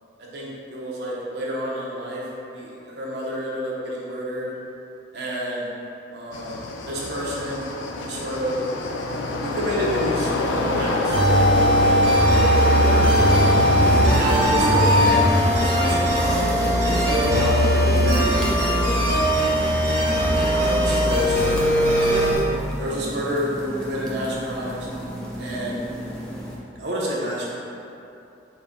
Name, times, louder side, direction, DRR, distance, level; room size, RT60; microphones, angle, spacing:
voice 1, 0.2-2.3 2.5-4.5 5.1-5.6 6.1-7.7 8.1-8.6 9.4-13.1 14.1-18.8 19.1-19.5 20.3-22.3 22.8-24.9 25.4-25.9 26.8-27.6, equal, 60° right, -5 dB, 0.7 m, -29 dB
sound 1, 6.3-18.7, left 2 dB, 80° left, 0.3 m, -27 dB
sound 2, 11.1-22.4, equal, 80° right, 1.4 m, -19 dB
sound 3, 13.8-26.6, equal, 5° left, 0.3 m, -34 dB
4.0 x 2.2 x 3.6 m, 2.7 s
head